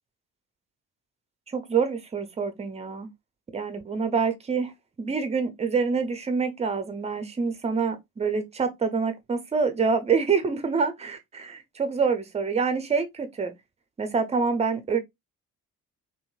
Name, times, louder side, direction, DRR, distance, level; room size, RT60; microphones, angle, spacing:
voice 1, 1.5-3.1 3.5-4.7 5.0-13.5 14.0-15.0, right 5 dB, 15° right, 0.5 m, -26 dB
3.0 x 2.7 x 2.2 m
figure-of-eight pair, 45°, 46 cm